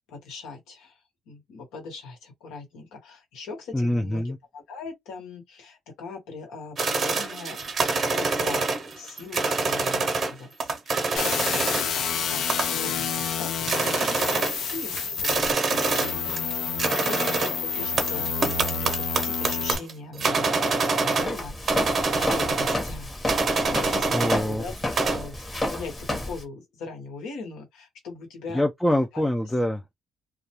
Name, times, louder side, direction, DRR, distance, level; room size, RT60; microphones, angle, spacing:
voice 1, 0.1-7.6 8.0-8.6 8.9-20.7 20.9-23.1 23.4-25.4 25.7-28.7 29.1-29.2, left 4 dB, 90° left, 1.2 m, -41 dB
voice 2, 3.7-4.4 24.1-24.6 28.5-29.8, left 1 dB, 5° left, 0.3 m, -24 dB
sound 1, 6.8-10.3 10.6-12.0 12.5-12.9 13.3-13.4 13.6-16.5 16.8-21.4 21.7-22.9 23.3-24.5 24.8-25.3, right 3 dB, 45° right, 0.7 m, -26 dB
sound 2, 11.2-19.8, left 6 dB, 70° left, 0.5 m, -29 dB
Walk footsteps, 21.2-26.4, left 1 dB, 25° left, 0.9 m, -31 dB
2.2 x 2.2 x 2.8 m
cardioid pair, 85°, 0 cm